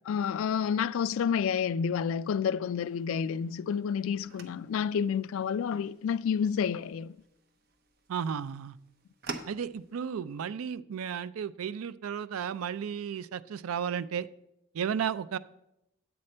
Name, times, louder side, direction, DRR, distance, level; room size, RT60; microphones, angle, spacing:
voice 1, 0.1-7.1, left 7 dB, 70° left, 0.3 m, -29 dB
sound 1, 2.8-10.0, right 4 dB, 45° right, 0.8 m, -48 dB
voice 2, 8.1-8.8 9.5-14.3 14.7-15.4, right 7 dB, 80° right, 0.4 m, -33 dB
9.6 x 7.8 x 4.3 m
head